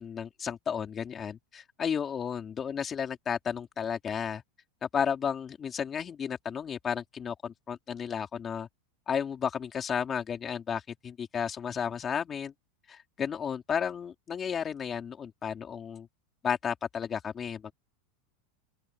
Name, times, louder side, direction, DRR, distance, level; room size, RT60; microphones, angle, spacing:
voice 1, 0.0-4.4 4.8-8.7 9.1-12.5 12.9-16.1 16.4-17.7, left 7 dB, 20° left, 3.6 m, -33 dB
open air
supercardioid pair, 150°, 0 cm